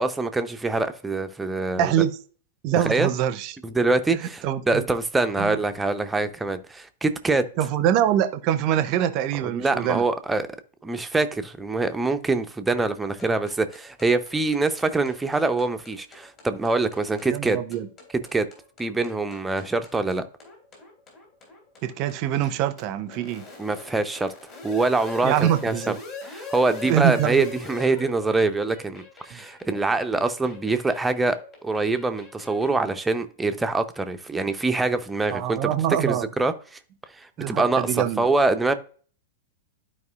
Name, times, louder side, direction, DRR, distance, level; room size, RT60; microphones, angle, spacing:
voice 1, 0.0-1.9 2.8-3.1 3.6-7.5 9.4-10.5 10.8-17.6 18.3-18.5 18.8-20.2 23.6-24.3 24.6-25.9 26.3-31.4 31.6-35.7 36.0-36.5 37.2-38.7, right 3 dB, 10° right, 0.7 m, -24 dB
voice 2, 1.8-2.2 2.6-3.6 4.1-4.8 5.4-5.6 7.6-10.0 17.3-17.9 21.8-23.5 25.2-26.0 26.8-27.5 29.3-29.4 35.3-36.3 37.4-38.3, right 11 dB, 40° right, 0.7 m, -24 dB
sound 1, 13.2-33.0, left 3 dB, 30° left, 3.1 m, -43 dB
12.0 x 4.8 x 2.4 m
figure-of-eight pair, 100°, 0 cm